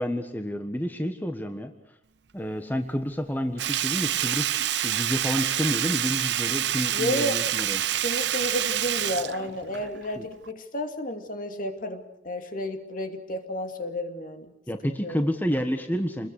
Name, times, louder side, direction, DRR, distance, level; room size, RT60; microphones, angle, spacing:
voice 1, 0.0-1.7 2.3-7.8 10.2-10.3 14.7-16.3, equal, 10° left, 6 dB, 1.5 m, -29 dB
Sink (filling or washing), 3.6-10.1 10.4-10.5, right 11 dB, 80° right, 0.8 m, -27 dB
voice 2, 6.9-7.4 8.0-14.5 14.8-15.2, equal, 50° left, 6 dB, 2.6 m, -31 dB
28.5 x 21.0 x 6.6 m, 0.79 s
head